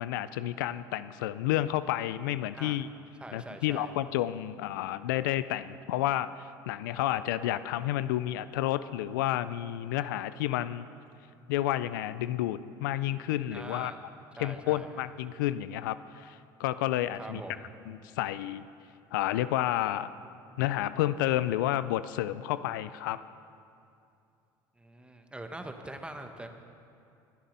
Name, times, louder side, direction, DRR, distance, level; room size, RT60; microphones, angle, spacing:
voice 1, 0.0-2.9 3.3-10.9 11.5-13.9 14.4-17.4 17.9-18.7 19.1-20.1 20.6-23.2, left 13 dB, 85° left, 15 dB, 0.4 m, -30 dB
voice 2, 3.2-3.9 13.5-14.0 14.4-15.0 17.2-17.7 24.8-26.5, right 1 dB, 10° right, 5 dB, 1.4 m, -43 dB
21.0 x 7.3 x 5.4 m, 2.6 s
hypercardioid pair, 75°, 10 cm